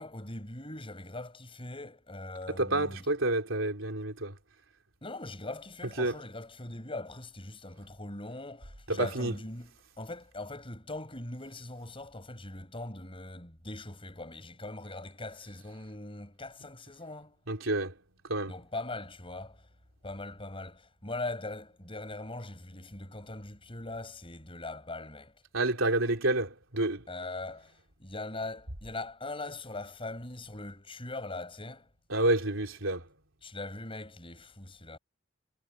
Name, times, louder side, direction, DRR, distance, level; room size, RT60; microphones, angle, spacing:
voice 1, 0.0-3.1 5.0-9.7 10.0-17.4 18.5-19.7 20.0-25.3 27.1-31.9 33.4-35.0, left 2 dB, 25° left, 6.4 m, -41 dB
voice 2, 2.5-4.4 6.0-6.2 8.9-9.3 17.5-17.9 18.3-18.5 25.5-27.0 32.1-33.1, right 2 dB, 70° right, 3.9 m, -29 dB
head